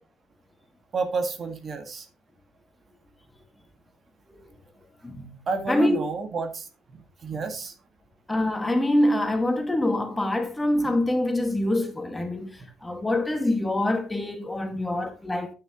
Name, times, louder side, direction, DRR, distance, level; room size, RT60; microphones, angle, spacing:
voice 1, 0.9-2.1 5.5-7.8 14.7-14.9, right 4 dB, 40° right, 1.7 m, -31 dB
voice 2, 5.7-6.1 8.3-15.5, left 1 dB, 10° left, 1.8 m, -25 dB
9.2 x 8.8 x 3.0 m
supercardioid pair, 90°, 0 cm